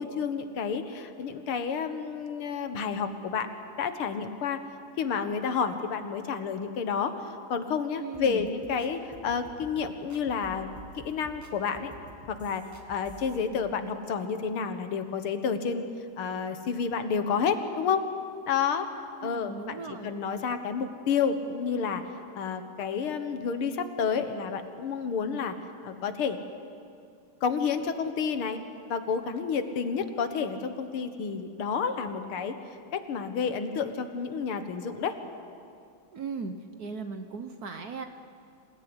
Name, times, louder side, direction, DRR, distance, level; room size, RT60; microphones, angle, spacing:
voice 1, 0.0-3.5 3.8-4.6 5.0-10.7 11.0-11.9 12.3-15.8 16.2-18.1 18.5-18.9 19.2-22.1 22.4-25.6 25.8-26.4 27.4-28.6 28.9-32.6 32.9-35.2, left 6 dB, 75° left, 9 dB, 2.2 m, -30 dB
voice 2, 8.0-8.5 19.2-20.1 36.1-36.5 36.8-38.1, right 5 dB, 50° right, 8 dB, 1.4 m, -37 dB
sound 1, 8.1-13.4, right 3 dB, 10° right, 1.9 m, -50 dB
27.0 x 17.5 x 9.8 m, 2.4 s
omnidirectional pair, 2.4 m